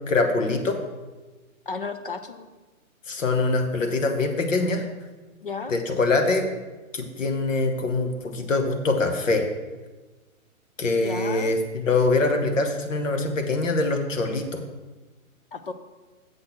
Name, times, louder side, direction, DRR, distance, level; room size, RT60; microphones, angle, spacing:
voice 1, 0.1-0.8 3.1-4.8 5.7-6.5 6.9-9.5 10.8-14.6, left 3 dB, 60° left, 5 dB, 1.4 m, -24 dB
voice 2, 1.7-2.5 5.4-5.7 11.0-11.5 15.5-15.7, left 4 dB, 40° left, 8 dB, 0.5 m, -33 dB
7.5 x 6.2 x 5.8 m, 1.2 s
hypercardioid pair, 175°, 43 cm